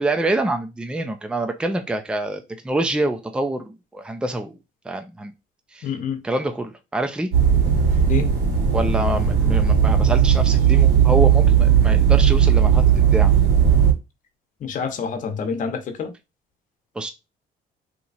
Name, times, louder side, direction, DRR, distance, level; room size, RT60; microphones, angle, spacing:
voice 1, 0.0-4.6 4.8-5.3 5.7-5.9 6.2-7.3 8.7-13.3 17.0-17.1, right 2 dB, 5° right, 0.5 m, -26 dB
voice 2, 5.8-6.2 8.1-8.3 14.6-16.1, left 6 dB, 50° left, 0.9 m, -27 dB
sound 1, 7.3-13.9, right 8 dB, 80° right, 1.4 m, -16 dB
2.9 x 2.4 x 4.1 m
cardioid pair, 110°, 17 cm